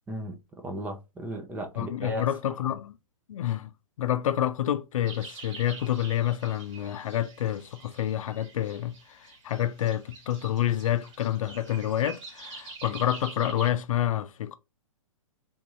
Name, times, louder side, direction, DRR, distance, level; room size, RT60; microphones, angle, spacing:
voice 1, 0.1-2.2, right 1 dB, 10° right, 0.5 m, -36 dB
voice 2, 1.8-3.0 3.3-3.7 4.0-14.6, left 11 dB, 70° left, 0.5 m, -28 dB
sound 1, 5.0-13.7, right 4 dB, 60° right, 1.9 m, -46 dB
3.6 x 2.6 x 3.0 m
hypercardioid pair, 140°, 18 cm